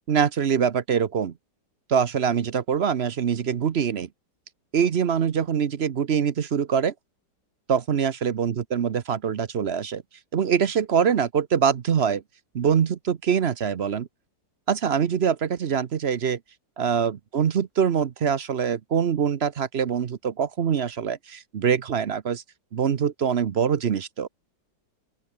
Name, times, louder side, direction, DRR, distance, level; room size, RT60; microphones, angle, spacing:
voice 1, 0.1-1.3 1.9-4.1 4.7-6.9 7.7-10.0 10.3-12.2 12.5-14.1 14.7-16.4 16.8-22.4 22.7-24.3, right 7 dB, 50° right, 0.8 m, -24 dB
open air
omnidirectional pair, 2.0 m